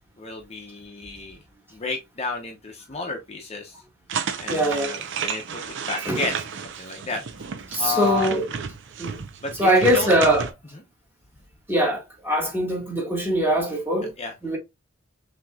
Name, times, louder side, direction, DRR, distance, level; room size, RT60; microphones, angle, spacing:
voice 1, 0.2-1.4 1.7-3.8 4.4-6.4 6.6-7.2 7.8-8.3 9.4-10.1 14.2-14.3, left 4 dB, 30° left, 0.8 m, -32 dB
sound 1, 4.1-10.5, right 6 dB, 65° right, 0.6 m, -32 dB
voice 2, 4.5-4.9 6.1-6.2 7.7-8.4 9.0-9.2 9.6-10.4 11.7-14.1 14.4-14.6, equal, 10° right, 1.5 m, -22 dB
6.0 x 2.9 x 2.3 m
head